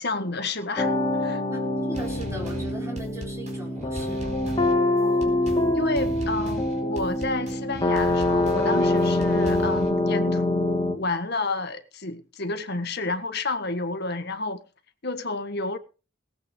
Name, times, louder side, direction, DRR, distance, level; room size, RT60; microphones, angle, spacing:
voice 1, 0.0-1.4 5.0-5.4 5.7-14.6 15.0-15.8, left 3 dB, 55° left, 1.7 m, -30 dB
sound 1, 0.8-11.0, left 2 dB, 25° left, 2.2 m, -25 dB
voice 2, 1.5-4.2, right 1 dB, 15° right, 5.8 m, -39 dB
sound 2, 1.9-9.9, equal, 35° right, 4.4 m, -37 dB
19.0 x 8.2 x 5.3 m
head